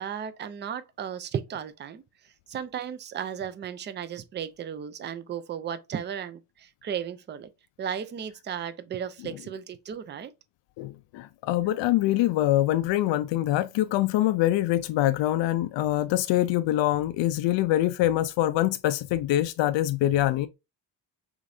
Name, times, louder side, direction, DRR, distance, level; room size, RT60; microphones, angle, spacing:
voice 1, 0.0-2.0 2.5-7.5 7.8-10.3, right 8 dB, 25° right, 0.3 m, -35 dB
voice 2, 10.8-20.5, left 14 dB, 85° left, 0.5 m, -24 dB
5.0 x 3.8 x 2.6 m
cardioid pair, 165°, 43 cm